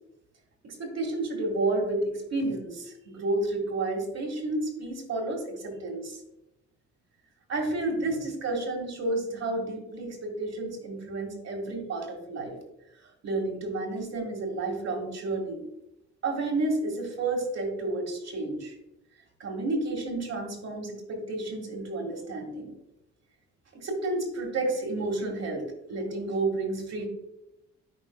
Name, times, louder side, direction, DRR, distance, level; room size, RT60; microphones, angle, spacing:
voice 1, 0.6-6.2 7.5-12.6 13.2-15.6 16.2-18.7 19.4-22.7 23.8-27.1, right 2 dB, 60° right, 1 dB, 2.1 m, -31 dB
10.5 x 4.6 x 2.4 m, 0.89 s
cardioid pair, 90°, 30 cm